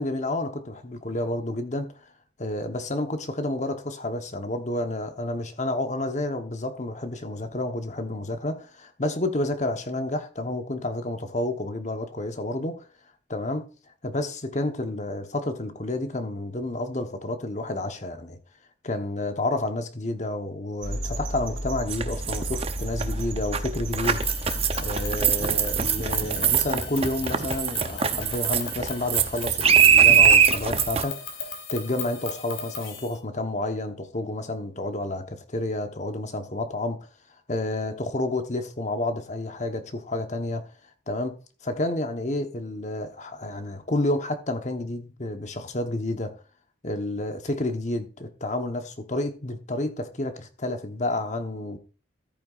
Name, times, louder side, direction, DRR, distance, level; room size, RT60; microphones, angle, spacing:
voice 1, 0.0-1.9 2.4-12.8 13.3-13.7 14.0-18.4 18.8-24.2 24.8-31.2 31.7-37.0 37.5-40.6 41.1-41.4 41.6-46.3 46.8-51.8, left 2 dB, 35° left, 1.0 m, -30 dB
sound 1, 20.8-26.7, right 1 dB, 75° right, 2.6 m, -33 dB
sound 2, 21.9-31.0, right 7 dB, 30° right, 0.7 m, -22 dB
sound 3, 24.0-33.1, left 6 dB, 85° left, 3.1 m, -38 dB
14.0 x 8.7 x 2.5 m
head